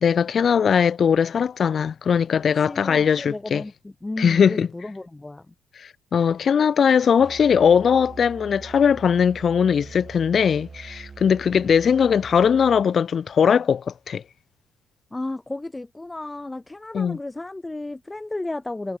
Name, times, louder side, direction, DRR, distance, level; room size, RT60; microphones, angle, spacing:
voice 1, 0.0-3.6 4.2-4.7 5.8-14.2 16.9-17.2, left 7 dB, 40° left, 0.9 m, -20 dB
voice 2, 2.7-5.5 15.1-19.0, left 2 dB, 10° left, 1.6 m, -33 dB
Musical instrument, 7.2-12.9, right 4 dB, 25° right, 7.6 m, -43 dB
cardioid pair, 145°, 0 cm